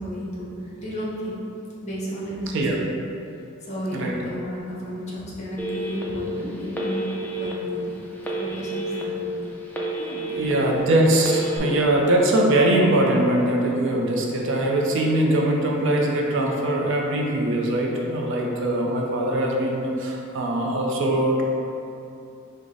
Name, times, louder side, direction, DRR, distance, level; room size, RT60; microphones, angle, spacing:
voice 1, 0.0-1.4 1.8-2.8 3.6-7.0 7.3-8.0 8.4-9.6 10.0-10.6, equal, 35° left, -7 dB, 0.9 m, -33 dB
Telephone, 5.6-6.3 6.7-7.5 8.2-9.0 9.4-10.5 11.2-11.6, right 2 dB, 10° left, 0.4 m, -30 dB
voice 2, 10.4-21.4, right 1 dB, 65° right, -1 dB, 0.5 m, -22 dB
4.7 x 2.1 x 3.8 m, 2.7 s
head